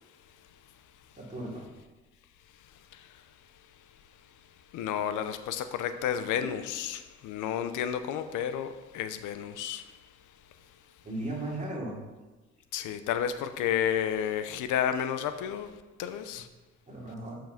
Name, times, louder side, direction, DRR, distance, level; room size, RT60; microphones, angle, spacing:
voice 1, 1.2-1.7 6.4-6.5 11.0-12.0 16.9-17.4, right 1 dB, 25° right, -4 dB, 3.3 m, -36 dB
voice 2, 4.7-9.9 12.7-15.7 16.0-16.5, left 9 dB, 90° left, 10 dB, 0.7 m, -31 dB
7.3 x 5.9 x 5.8 m, 1.2 s
cardioid pair, 90°, 30 cm